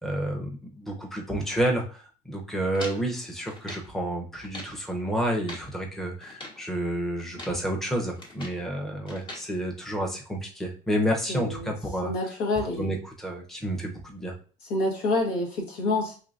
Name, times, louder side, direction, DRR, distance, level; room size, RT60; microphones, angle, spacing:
voice 1, 0.0-12.1 12.8-14.3, right 1 dB, ahead, 0 dB, 0.8 m, -30 dB
sound 1, 2.7-3.9 4.3-4.8 5.2-5.7 6.2-6.6 7.2-7.6 8.0-8.6 9.1-9.5, left 1 dB, 30° left, 1.3 m, -42 dB
voice 2, 11.3-11.7 12.0-12.9 14.7-16.2, left 2 dB, 75° left, 0 dB, 1.4 m, -27 dB
3.8 x 3.2 x 2.4 m, 0.39 s
cardioid pair, 110°, 17 cm